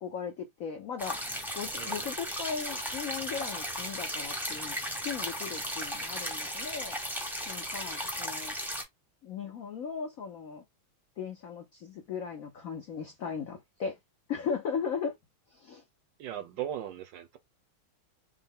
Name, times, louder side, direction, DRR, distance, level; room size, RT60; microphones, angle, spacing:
voice 1, 0.0-1.2 1.5-4.8 5.0-7.0 7.5-8.5 9.2-10.6 11.2-14.0 14.3-15.1 15.5-15.8, left 6 dB, 75° left, 0.7 m, -37 dB
sound 1, 1.0-8.8, equal, ahead, 0.5 m, -36 dB
voice 2, 16.2-17.4, right 11 dB, 70° right, 1.2 m, -38 dB
5.4 x 2.1 x 3.6 m
omnidirectional pair, 2.3 m